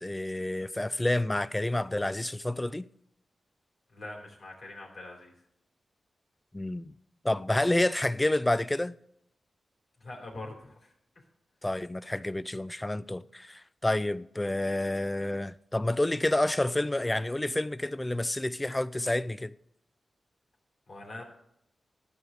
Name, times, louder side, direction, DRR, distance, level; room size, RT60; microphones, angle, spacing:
voice 1, 0.0-2.9 6.5-6.9 7.2-9.0 11.6-19.5, left 1 dB, 20° left, 0.4 m, -29 dB
voice 2, 3.9-5.3 10.0-11.2 20.9-21.2, left 2 dB, 65° left, 3.3 m, -44 dB
12.5 x 4.9 x 6.4 m
cardioid pair, 55°, 0 cm